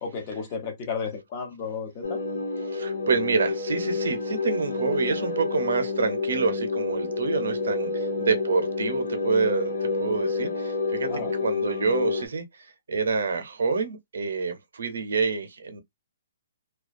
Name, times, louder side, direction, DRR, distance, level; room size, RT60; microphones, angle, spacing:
voice 1, 0.0-2.2 11.1-11.3, left 5 dB, 20° left, 0.5 m, -33 dB
sound 1, 2.0-12.3, left 3 dB, 70° left, 0.6 m, -29 dB
voice 2, 2.6-15.8, right 5 dB, 75° right, 0.6 m, -27 dB
2.3 x 2.2 x 2.5 m
hypercardioid pair, 180°, 0 cm